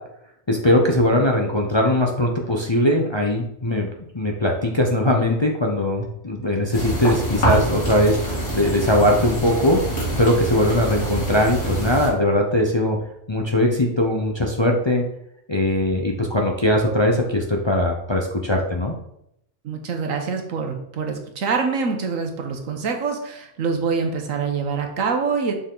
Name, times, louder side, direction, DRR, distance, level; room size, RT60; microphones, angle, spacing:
voice 1, 0.5-3.9 4.1-9.8 10.2-13.0 13.3-15.1 15.5-18.9, left 1 dB, 30° left, 0 dB, 0.6 m, -20 dB
sound 1, 6.7-12.1, right 1 dB, 80° left, 2.6 m, -25 dB
voice 2, 19.6-25.5, right 5 dB, 80° right, 4 dB, 1.4 m, -25 dB
6.8 x 4.4 x 3.9 m, 0.77 s
omnidirectional pair, 1.4 m